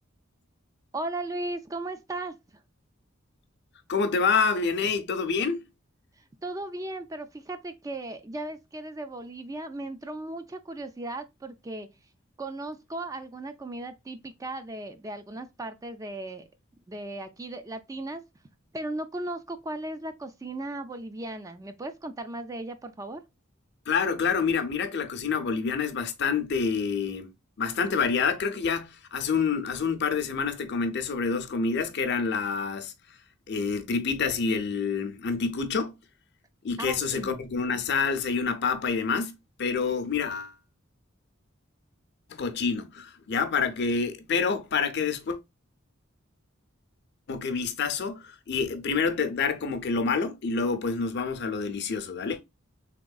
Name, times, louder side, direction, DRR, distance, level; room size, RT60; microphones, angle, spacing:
voice 1, 0.9-2.4 6.2-11.9 12.4-16.5 16.9-18.2 18.7-23.2 36.8-37.4, right 2 dB, 15° right, 0.4 m, -36 dB
voice 2, 3.9-5.6 23.9-27.3 27.6-32.9 33.5-35.9 36.6-40.5 42.3-45.4 47.3-52.4, left 5 dB, 55° left, 0.6 m, -27 dB
3.6 x 3.0 x 2.3 m
head